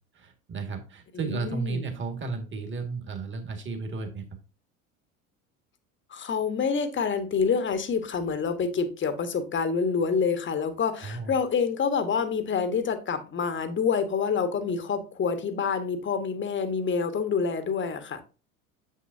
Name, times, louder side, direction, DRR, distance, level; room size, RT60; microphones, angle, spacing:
voice 1, 0.2-4.2 11.0-11.3, right 4 dB, 30° right, 1.9 m, -33 dB
voice 2, 1.1-1.9 6.1-18.2, left 5 dB, 25° left, 1.2 m, -27 dB
7.2 x 6.5 x 2.7 m
hypercardioid pair, 75°, 42 cm